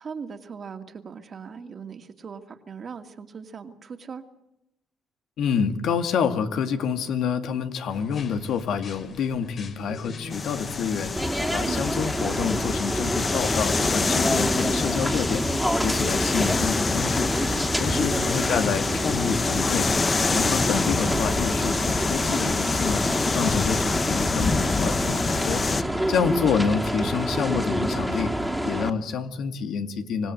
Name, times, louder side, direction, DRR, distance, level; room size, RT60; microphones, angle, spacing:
voice 1, 0.0-4.2 11.6-11.9 17.9-18.4, right 6 dB, 45° right, 6 dB, 2.3 m, -39 dB
voice 2, 5.4-11.1 11.5-15.4 15.8-17.3 17.8-19.9 20.3-23.0 23.3-25.6 26.1-28.3 28.7-30.3, left 6 dB, 75° left, 7 dB, 2.2 m, -27 dB
sound 1, 7.9-14.9, left 4 dB, 55° left, 4.2 m, -44 dB
sound 2, 10.3-25.8, left 4 dB, 35° left, 1.1 m, -27 dB
sound 3, 11.2-28.9, equal, ahead, 2.6 m, -27 dB
26.5 x 17.0 x 7.9 m, 0.87 s
cardioid pair, 90°, 0 cm